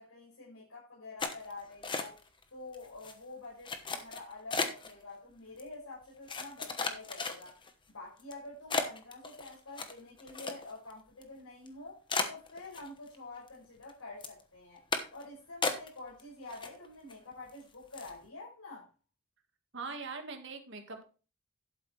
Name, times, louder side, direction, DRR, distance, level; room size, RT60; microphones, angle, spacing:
voice 1, 0.0-2.2 2.5-7.5 7.9-12.0 12.3-14.8 15.1-18.9, left 2 dB, 85° left, -6 dB, 5.9 m, -48 dB
sound 1, 1.2-2.4 2.7-3.1 3.6-4.9 5.6-5.7 6.3-7.7 8.2-8.3 8.7-10.9 11.2-11.3 11.7-11.8 12.1-13.2 13.5-13.9 14.2-14.4 14.9-15.2 15.6-16.2 16.5-17.1 17.5-17.6 17.9-18.2, left 4 dB, 20° left, 1.1 m, -35 dB
voice 2, 19.7-21.0, right 4 dB, 55° right, 5 dB, 1.8 m, -41 dB
11.5 x 8.4 x 3.3 m, 0.34 s
head